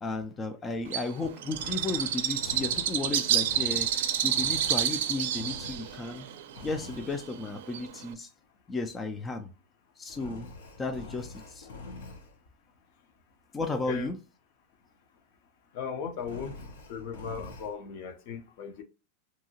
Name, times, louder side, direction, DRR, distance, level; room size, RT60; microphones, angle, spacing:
voice 1, 0.0-6.3 6.6-8.3 8.7-9.5 10.0-10.5 10.8-11.7 13.5-14.2, left 3 dB, 15° left, 0.3 m, -34 dB
Bird, 0.9-8.1, right 10 dB, 75° right, 0.4 m, -29 dB
Engine, 1.5-6.2 6.5-7.3 10.1-12.4 16.2-17.7, left 3 dB, 85° left, 0.9 m, -45 dB
voice 2, 13.7-14.1 15.7-16.5 16.9-18.8, left 6 dB, 55° left, 0.6 m, -37 dB
2.7 x 2.7 x 2.7 m
supercardioid pair, 145°, 0 cm